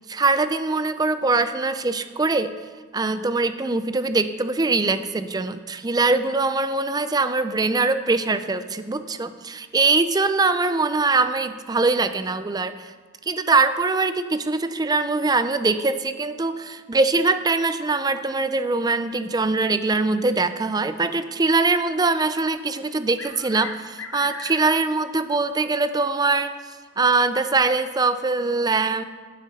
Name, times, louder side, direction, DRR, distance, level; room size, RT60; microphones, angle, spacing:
voice 1, 0.1-2.5 2.9-12.9 13.3-26.5 27.0-29.0, right 3 dB, 20° right, 11 dB, 0.4 m, -22 dB
sound 1, 22.9-25.1 25.4-25.5 26.4-26.5 27.7-27.8, left 4 dB, 75° left, 1.0 m, -37 dB
13.5 x 9.1 x 4.1 m, 1.5 s
head